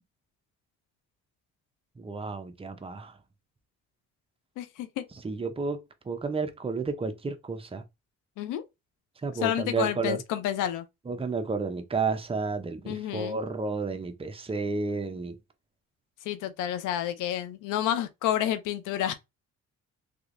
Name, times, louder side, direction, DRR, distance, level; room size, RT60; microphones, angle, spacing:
voice 1, 2.0-3.1 5.2-5.8 6.1-7.8 9.2-10.2 11.1-15.4, right 4 dB, 20° right, 0.7 m, -31 dB
voice 2, 4.6-5.0 8.4-8.6 9.4-10.8 12.9-13.4 16.2-19.1, left 11 dB, 90° left, 0.6 m, -29 dB
3.3 x 2.9 x 2.5 m
cardioid pair, 90°, 30 cm